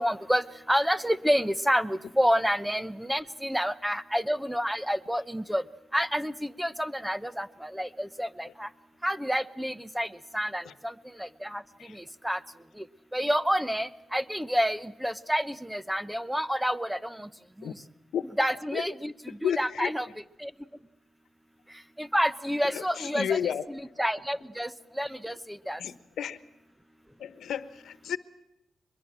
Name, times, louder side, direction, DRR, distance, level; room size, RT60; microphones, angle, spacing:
voice 1, 0.0-5.6 5.9-8.7 9.0-10.1 10.3-11.6 11.9-12.4 12.8-12.9 13.1-17.3 17.6-17.8 18.4-19.1 19.4-20.1 20.4-20.5 22.0-23.4 23.7-24.7 25.0-25.8, equal, 5° right, 14 dB, 1.0 m, -29 dB
voice 2, 19.3-19.9 22.6-23.6 25.8-26.4 27.2-28.2, left 9 dB, 90° left, 13 dB, 1.2 m, -32 dB
23.0 x 22.0 x 7.5 m, 0.89 s
cardioid pair, 90°, 0 cm